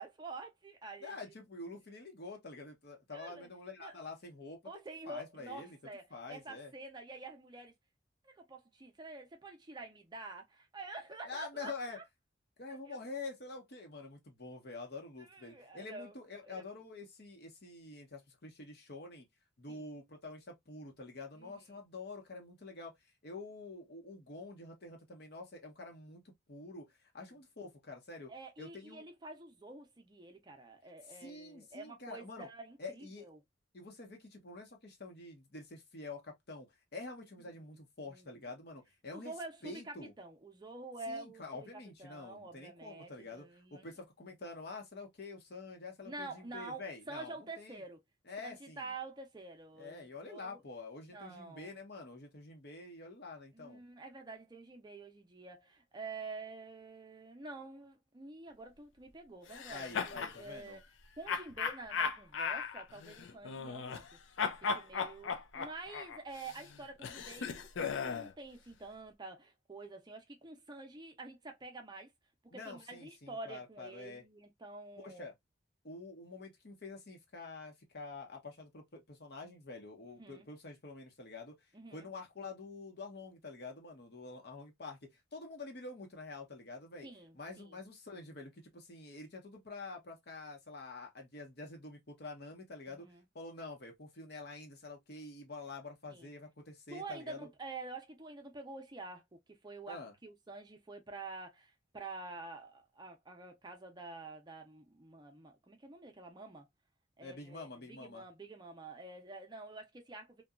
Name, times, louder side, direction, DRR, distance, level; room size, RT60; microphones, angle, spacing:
voice 1, 0.0-1.3 3.1-3.5 3.8-4.0 4.6-7.7 8.2-12.0 12.7-13.0 15.2-16.1 16.4-16.6 19.7-19.9 21.3-21.8 27.2-27.3 28.3-33.4 38.0-38.3 39.1-43.9 46.0-48.0 48.4-50.6 51.1-51.7 53.5-60.8 61.2-64.2 64.6-72.1 72.5-75.3 80.2-80.5 81.7-82.1 87.0-87.8 92.9-93.3 96.1-96.3 96.9-106.7 107.2-110.4, right 3 dB, 20° right, 0.5 m, -48 dB
voice 2, 1.0-4.6 5.1-5.8 6.1-6.7 11.2-12.0 12.6-19.3 19.6-22.9 23.2-26.2 26.5-28.3 28.6-29.0 31.1-32.5 32.8-33.3 33.7-39.3 39.6-40.1 41.1-47.8 48.3-48.9 49.8-53.8 59.7-60.8 72.5-74.3 75.0-75.3 75.8-81.6 81.9-87.1 87.3-93.1 93.3-97.5 99.9-100.1 107.2-108.2, left 3 dB, 55° left, 0.9 m, -47 dB
sound 1, 59.5-60.4 61.3-64.1 64.4-68.3, left 5 dB, 80° left, 0.4 m, -37 dB
2.7 x 2.2 x 2.3 m
head